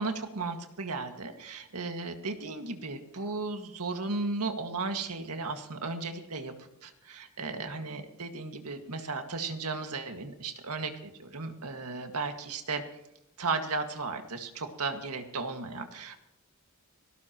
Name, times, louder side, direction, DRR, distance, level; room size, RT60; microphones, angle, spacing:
voice 1, 0.0-12.8 13.4-16.2, right 3 dB, 80° right, 5 dB, 1.9 m, -35 dB
18.0 x 17.5 x 3.0 m, 0.83 s
head